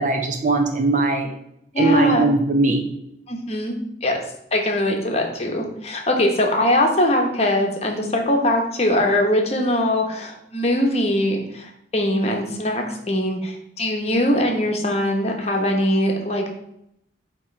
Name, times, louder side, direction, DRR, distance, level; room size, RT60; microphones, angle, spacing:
voice 1, 0.0-1.3 1.8-2.9, right 3 dB, 45° right, 3 dB, 0.8 m, -20 dB
voice 2, 1.7-2.3 3.3-4.2 4.5-16.5, left 1 dB, 35° left, 2 dB, 1.0 m, -21 dB
8.8 x 3.0 x 4.4 m, 0.77 s
head